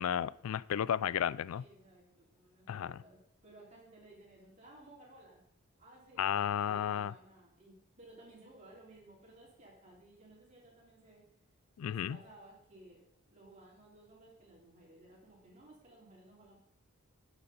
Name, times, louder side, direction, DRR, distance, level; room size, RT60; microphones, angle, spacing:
voice 1, 0.0-1.6 2.7-2.9 6.2-7.1 11.8-12.2, left 9 dB, 70° left, 0.3 m, -33 dB
voice 2, 1.5-5.4 5.8-11.2 11.8-13.0 13.3-16.5, right 1 dB, 30° right, 3.3 m, -58 dB
9.5 x 7.0 x 5.1 m
head